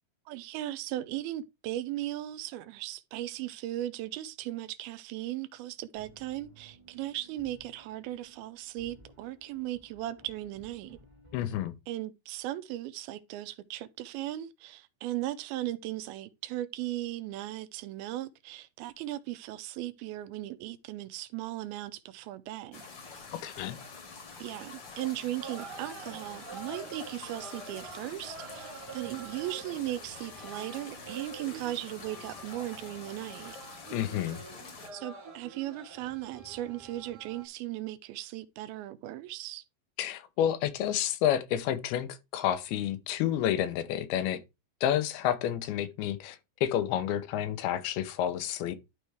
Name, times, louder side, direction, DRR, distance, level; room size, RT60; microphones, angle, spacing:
voice 1, 0.3-11.0 11.9-22.9 24.4-28.7 28.9-33.6 34.9-39.6, right 14 dB, 80° right, 2.4 m, -37 dB
sound 1, 5.9-11.6, right 1 dB, 15° right, 1.1 m, -57 dB
voice 2, 11.3-11.8 23.4-23.8 33.9-34.4 40.0-44.4 44.8-48.8, left 11 dB, 85° left, 2.7 m, -30 dB
sound 2, 22.7-34.9, left 4 dB, 50° left, 1.5 m, -47 dB
sound 3, 25.4-37.5, right 4 dB, 45° right, 1.3 m, -47 dB
12.0 x 4.7 x 3.4 m
omnidirectional pair, 4.4 m